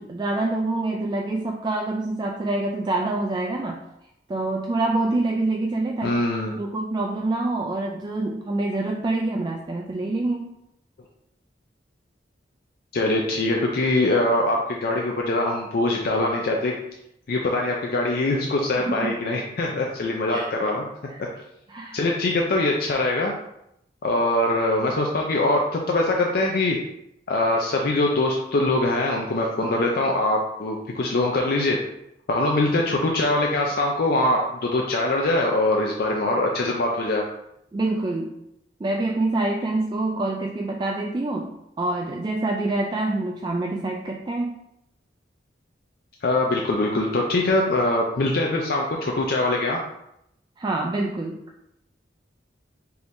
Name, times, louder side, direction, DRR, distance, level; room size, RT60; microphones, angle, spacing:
voice 1, 0.0-3.8 4.3-6.2 6.6-10.5 18.8-19.1 20.3-20.5 21.1-21.2 21.7-22.0 37.7-38.3 38.8-41.5 41.8-44.6 50.6-51.4, right 2 dB, 25° right, 1 dB, 0.3 m, -26 dB
voice 2, 6.0-6.5 12.9-16.7 17.3-20.8 21.9-23.3 24.0-26.8 27.3-31.8 32.3-37.2 46.2-49.8, left 2 dB, 55° left, 0 dB, 0.5 m, -23 dB
4.6 x 3.5 x 2.6 m, 0.81 s
head